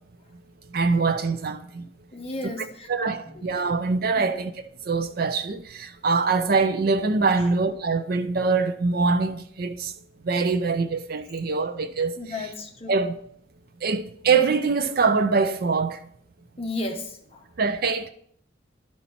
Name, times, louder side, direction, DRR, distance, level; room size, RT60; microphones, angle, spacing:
voice 1, 0.7-1.9 2.6-4.5 4.9-9.9 10.2-12.5 12.9-13.2 13.8-16.0 17.6-18.1, right 4 dB, 50° right, 0.5 m, -24 dB
voice 2, 2.1-2.9 3.3-3.4 4.2-4.3 12.2-13.0 16.6-17.4, left 2 dB, 30° left, 1.0 m, -33 dB
11.5 x 4.2 x 4.2 m
head